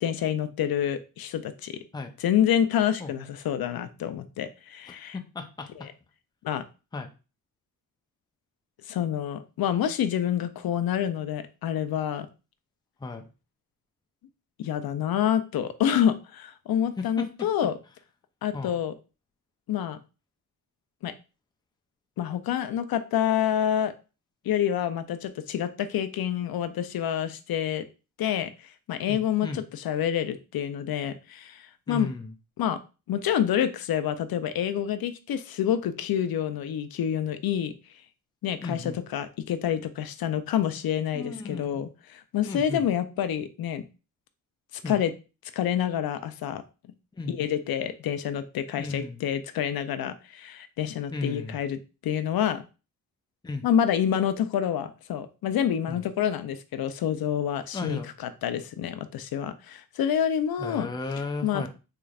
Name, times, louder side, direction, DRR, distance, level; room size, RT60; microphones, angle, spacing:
voice 1, 0.0-1.8 2.2-5.2 5.8-5.9 6.4-6.6 8.9-12.3 14.6-17.8 18.4-18.9 19.7-20.0 21.0-21.1 22.2-23.9 24.4-27.9 28.2-32.1 32.6-32.8 33.1-37.7 38.4-43.8 44.9-45.1 45.5-46.6 47.3-52.6 53.6-60.9 61.4-61.7, left 9 dB, 75° left, 11 dB, 0.5 m, -27 dB
voice 2, 5.1-5.9 6.9-7.1 13.0-13.2 17.0-17.5 18.5-18.7 29.1-29.6 31.9-32.3 38.6-39.0 41.1-41.8 42.5-42.8 44.8-45.0 47.1-47.4 48.8-49.2 51.1-51.6 53.4-53.6 55.9-56.0 57.7-58.1 60.6-61.7, left 3 dB, 10° left, 4 dB, 0.5 m, -35 dB
3.8 x 3.3 x 2.3 m, 0.31 s
wide cardioid pair, 120°, 36 cm